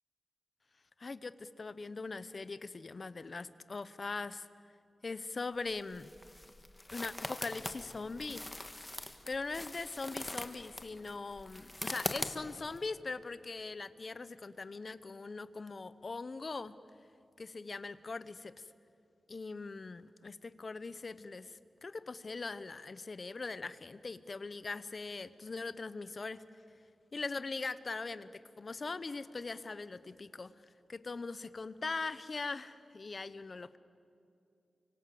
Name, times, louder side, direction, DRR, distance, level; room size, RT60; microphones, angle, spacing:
voice 1, 1.0-4.5 5.0-6.1 6.9-8.4 9.3-16.8 17.4-18.7 19.3-26.4 27.1-30.5 30.9-33.8, left 3 dB, 40° left, 14 dB, 0.9 m, -41 dB
sound 1, 5.6-12.8, left 1 dB, 15° left, 1.5 m, -42 dB
29.5 x 25.5 x 7.8 m, 2.6 s
wide cardioid pair, 125°, 0 cm